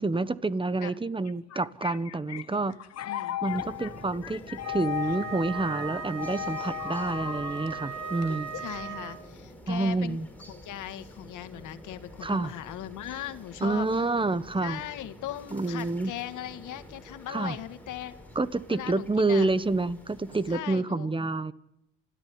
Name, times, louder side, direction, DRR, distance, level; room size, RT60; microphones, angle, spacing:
voice 1, 0.0-2.7 3.4-8.5 9.7-10.3 12.2-12.5 13.6-14.8 15.5-16.1 17.3-17.5 18.3-21.5, right 3 dB, 15° right, 16 dB, 1.2 m, -28 dB
sound 1, 1.3-8.8, left 14 dB, 55° left, 1.0 m, -37 dB
voice 2, 3.0-3.4 8.5-10.2 10.5-13.9 14.6-18.1 18.7-19.5 20.5-21.1, left 12 dB, 85° left, 11 dB, 1.7 m, -39 dB
sound 2, 3.5-20.6, left 1 dB, 5° left, 5.1 m, -48 dB
Wind instrument woodwind instrument, 4.6-9.3, right 8 dB, 55° right, 2.7 m, -38 dB
29.0 x 13.5 x 9.6 m, 0.80 s
cardioid pair, 90°, 30 cm